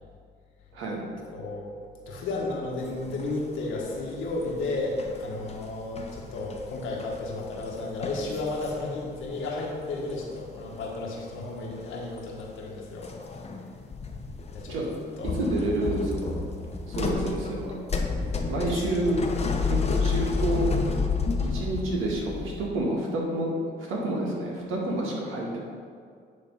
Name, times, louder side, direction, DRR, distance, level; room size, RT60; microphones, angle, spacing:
voice 1, 0.7-1.0 14.7-14.9 15.4-16.4 16.9-17.7 18.5-19.2 19.6-20.7 21.5-25.6, right 1 dB, 90° right, -3 dB, 1.9 m, -29 dB
voice 2, 1.3-1.7 2.1-13.1 14.5-14.9 15.2-15.4 18.7-19.2, left 2 dB, 85° left, -3 dB, 1.6 m, -33 dB
sound 1, 2.9-3.6 3.9-9.5 9.8-10.9 11.1-11.4 11.7-12.4 13.0-14.7 15.1-22.7, left 4 dB, 30° left, 0.9 m, -31 dB
9.7 x 3.5 x 5.5 m, 2.2 s
cardioid pair, 90°, 20 cm